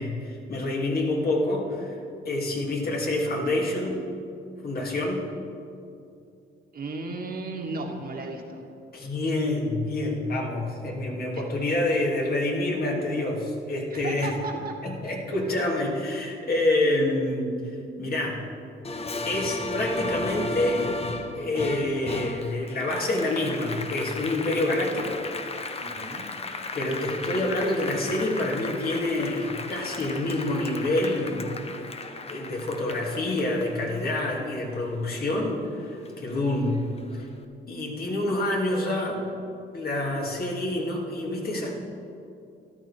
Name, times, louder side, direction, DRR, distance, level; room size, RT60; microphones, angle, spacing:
voice 1, 0.0-2.0 2.2-4.0 4.6-5.2 8.9-14.3 14.8-18.5 19.2-20.8 21.4-25.2 26.7-31.6 32.3-36.8 37.7-39.2 39.7-41.7, left 1 dB, 50° left, -1 dB, 2.7 m, -27 dB
voice 2, 6.7-8.6 11.3-11.5 13.9-14.8 25.8-26.3, right 3 dB, 50° right, 1 dB, 1.8 m, -35 dB
Applause, 18.8-35.7 36.1-37.2, left 3 dB, 30° left, 1.0 m, -35 dB
13.5 x 12.0 x 4.4 m, 2.5 s
cardioid pair, 90°, 20 cm